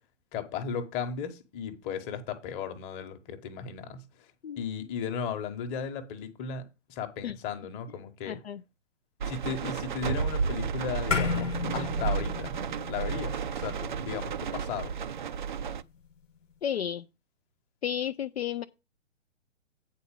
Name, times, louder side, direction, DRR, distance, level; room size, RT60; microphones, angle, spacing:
voice 1, 0.3-4.0 4.6-6.6 6.9-8.4 9.3-12.5 12.9-14.9, left 6 dB, 20° left, 1.1 m, -35 dB
voice 2, 8.3-8.6 16.6-17.1 17.8-18.6, left 9 dB, 55° left, 0.5 m, -32 dB
sound 1, 9.2-15.8, right 6 dB, 40° right, 0.4 m, -32 dB
sound 2, 11.1-15.7, left 5 dB, 80° left, 1.1 m, -34 dB
8.6 x 4.1 x 7.0 m
figure-of-eight pair, 130°, 37 cm